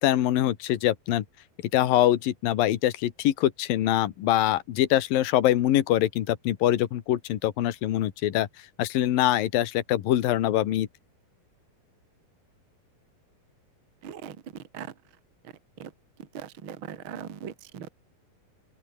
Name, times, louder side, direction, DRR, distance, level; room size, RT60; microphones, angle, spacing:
voice 1, 0.0-1.2 1.7-8.5 8.8-10.9, left 13 dB, 75° left, 3.3 m, -24 dB
voice 2, 14.0-14.9 15.4-15.5 15.8-15.9 16.2-17.9, right 9 dB, 40° right, 2.2 m, -40 dB
open air
omnidirectional pair, 4.1 m